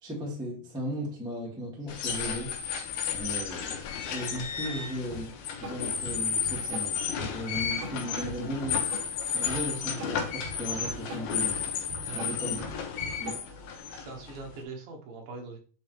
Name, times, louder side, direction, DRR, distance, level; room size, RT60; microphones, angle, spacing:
voice 1, 0.0-2.5 3.1-5.3 5.6-8.8 9.3-12.6 13.2-13.4, equal, ahead, -3 dB, 0.9 m, -36 dB
sound 1, 1.9-14.6, left 7 dB, 80° left, 2.8 m, -33 dB
Drum kit / Drum, 5.1-13.7, right 1 dB, 50° right, 4.8 m, -42 dB
voice 2, 13.9-15.6, right 4 dB, 70° right, 2 dB, 2.9 m, -42 dB
9.3 x 4.1 x 3.3 m, 0.40 s
omnidirectional pair, 4.4 m